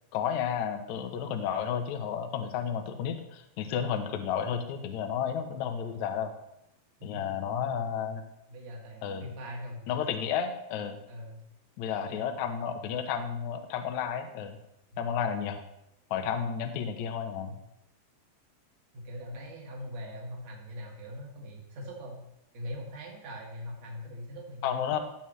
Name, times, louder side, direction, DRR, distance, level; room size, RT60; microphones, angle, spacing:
voice 1, 0.1-6.3 7.0-8.2 9.0-9.3 9.9-11.0 11.8-14.6 15.0-15.6 16.1-17.5 24.6-25.0, left 8 dB, 80° left, 6 dB, 1.7 m, -32 dB
voice 2, 8.5-9.9 11.1-11.4 12.0-12.2 14.9-15.1 17.4-17.5 18.9-22.2 22.5-24.9, equal, 50° right, -1 dB, 2.9 m, -41 dB
18.0 x 7.3 x 3.2 m, 0.85 s
omnidirectional pair, 4.7 m